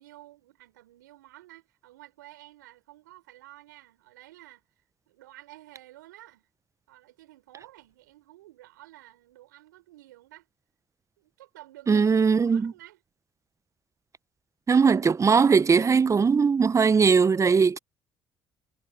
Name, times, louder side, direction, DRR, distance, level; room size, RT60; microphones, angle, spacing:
voice 1, 0.0-4.6 5.1-6.5 6.9-10.5 11.2-13.0, right 16 dB, 85° right, 5.4 m, -51 dB
voice 2, 11.9-12.7 14.7-17.8, right 5 dB, 30° right, 0.8 m, -20 dB
hypercardioid pair, 50°, 10 cm